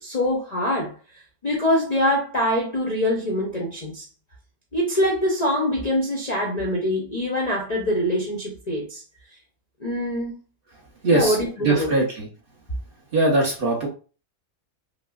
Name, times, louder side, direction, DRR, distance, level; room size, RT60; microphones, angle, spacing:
voice 1, 0.0-1.0 1.4-4.1 4.7-9.0 9.8-10.4 11.1-12.0, left 1 dB, 40° left, 0.6 m, -24 dB
voice 2, 11.0-12.3 13.1-13.9, right 2 dB, 45° right, 1.0 m, -21 dB
5.4 x 2.1 x 2.3 m
omnidirectional pair, 1.5 m